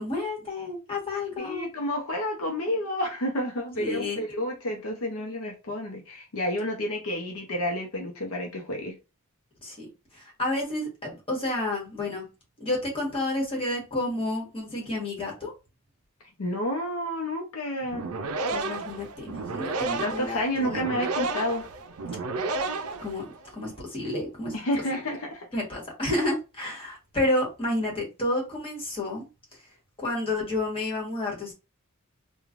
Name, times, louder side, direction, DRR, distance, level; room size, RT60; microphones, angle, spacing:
voice 1, 0.0-1.7 3.8-4.2 9.6-12.3 12.6-15.5 18.5-20.8 23.0-23.2 23.5-24.5 25.5-29.3 30.0-31.5, left 2 dB, 25° left, 1.3 m, -30 dB
voice 2, 1.4-8.9 16.4-18.1 20.0-21.6 24.5-25.5, left 1 dB, 75° left, 0.7 m, -30 dB
sound 1, 17.8-23.6, right 3 dB, 85° right, 0.5 m, -32 dB
3.1 x 2.3 x 2.4 m
head